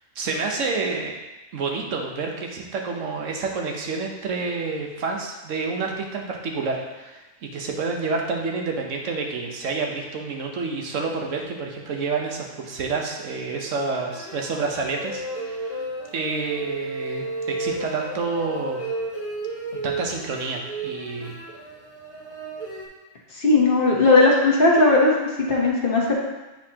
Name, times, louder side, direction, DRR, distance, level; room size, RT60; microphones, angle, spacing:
voice 1, 0.2-1.2 1.5-15.8 16.1-18.9 19.7-21.4, right 4 dB, 75° right, 1 dB, 1.2 m, -29 dB
sound 1, 14.1-22.9, right 2 dB, 15° left, 1.4 m, -33 dB
voice 2, 23.3-25.1 25.5-26.1, left 3 dB, 45° left, -2 dB, 1.2 m, -17 dB
8.6 x 4.1 x 2.9 m, 1.1 s
omnidirectional pair, 1.3 m